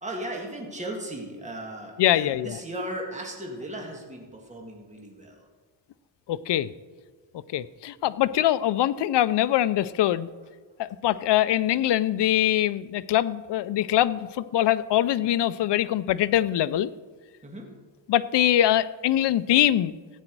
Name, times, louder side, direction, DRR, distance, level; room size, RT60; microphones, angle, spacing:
voice 1, 0.0-5.4 17.4-17.7, right 1 dB, 15° right, 0 dB, 1.9 m, -36 dB
voice 2, 2.0-2.6 6.3-6.7 7.5-10.3 10.8-16.9 18.1-20.0, left 12 dB, 65° left, 16 dB, 0.5 m, -23 dB
14.5 x 8.8 x 4.7 m, 1.5 s
wide cardioid pair, 115°, 45 cm